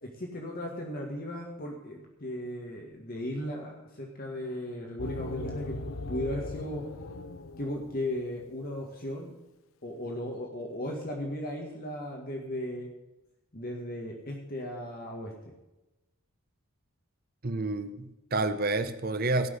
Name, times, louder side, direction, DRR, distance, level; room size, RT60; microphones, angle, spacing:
voice 1, 0.0-5.8 6.1-6.8 7.6-9.3 9.8-12.9 13.5-15.3, left 1 dB, 45° left, 0 dB, 1.8 m, -36 dB
sound 1, 5.0-8.4, left 2 dB, 80° left, 0.7 m, -39 dB
voice 2, 17.4-19.5, right 2 dB, 45° right, 10 dB, 0.9 m, -29 dB
16.0 x 6.2 x 8.1 m, 0.98 s
head